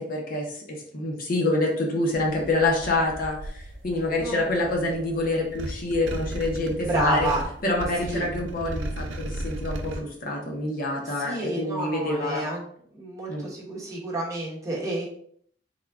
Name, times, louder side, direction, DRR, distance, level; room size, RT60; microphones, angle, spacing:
voice 1, 0.0-7.3 7.6-12.4 13.3-13.4, left 2 dB, 50° left, 0 dB, 0.7 m, -27 dB
sound 1, 2.1-10.0, right 1 dB, 85° right, 0.5 m, -36 dB
voice 2, 4.2-4.6 6.8-7.4 8.0-8.3 11.0-12.6 12.9-15.1, right 1 dB, 15° right, -5 dB, 1.1 m, -30 dB
3.6 x 2.3 x 3.5 m, 0.62 s
head